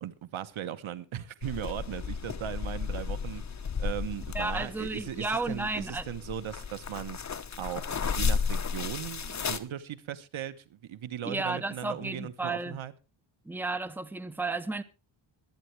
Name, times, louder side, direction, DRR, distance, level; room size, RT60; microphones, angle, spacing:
voice 1, 0.0-3.4 3.8-7.2 7.6-12.9, right 10 dB, 75° right, 1.2 m, -38 dB
sound 1, 1.4-9.6, left 6 dB, 35° left, 1.1 m, -33 dB
voice 2, 4.3-6.1 11.2-12.8 13.4-14.8, right 3 dB, 5° right, 0.8 m, -33 dB
22.5 x 9.1 x 3.3 m
wide cardioid pair, 115°, 48 cm